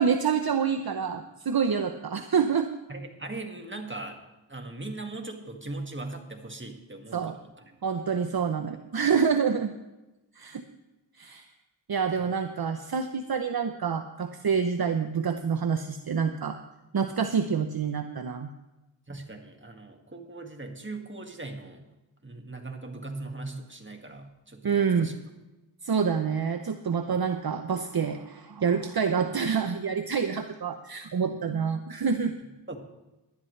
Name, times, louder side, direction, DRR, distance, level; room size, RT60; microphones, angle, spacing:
voice 1, 0.0-2.7 7.1-7.4 7.8-9.7 10.4-10.6 11.2-11.4 11.9-16.6 16.9-18.5 24.6-25.1 25.8-32.4, right 6 dB, 50° right, 7 dB, 0.8 m, -27 dB
voice 2, 2.9-4.2 4.5-7.3 19.1-21.9 22.2-25.1 32.4-32.8, right 2 dB, 25° right, 3 dB, 2.0 m, -39 dB
19.0 x 11.5 x 3.3 m, 1.0 s
cardioid pair, 45°, 47 cm